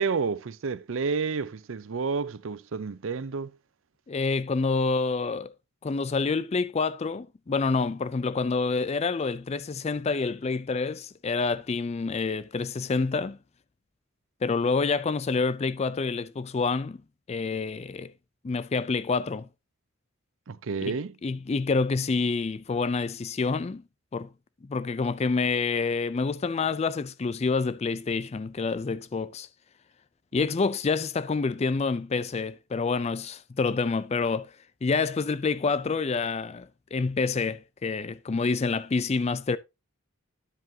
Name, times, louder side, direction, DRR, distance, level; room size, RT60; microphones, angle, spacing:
voice 1, 0.0-3.5 20.5-21.1, right 5 dB, 65° right, 0.5 m, -30 dB
voice 2, 4.1-5.5 5.8-13.4 14.4-17.0 17.3-18.1 18.4-19.5 20.8-20.9 21.2-23.8 24.1-24.3 24.6-29.5 30.3-34.5 34.8-39.6, left 4 dB, 30° left, 0.4 m, -27 dB
9.7 x 7.6 x 2.7 m
head